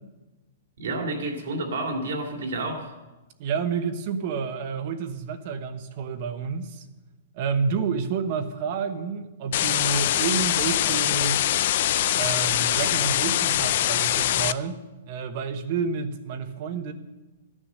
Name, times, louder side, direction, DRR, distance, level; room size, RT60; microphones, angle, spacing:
voice 1, 0.8-3.0, right 2 dB, 65° right, 2 dB, 2.7 m, -30 dB
voice 2, 3.4-6.9 7.3-11.4 12.1-16.9, right 6 dB, 35° right, 9 dB, 1.1 m, -29 dB
sound 1, 9.5-14.5, left 13 dB, 45° left, 0.4 m, -23 dB
14.0 x 9.9 x 6.5 m, 1.1 s
hypercardioid pair, 170°, 0 cm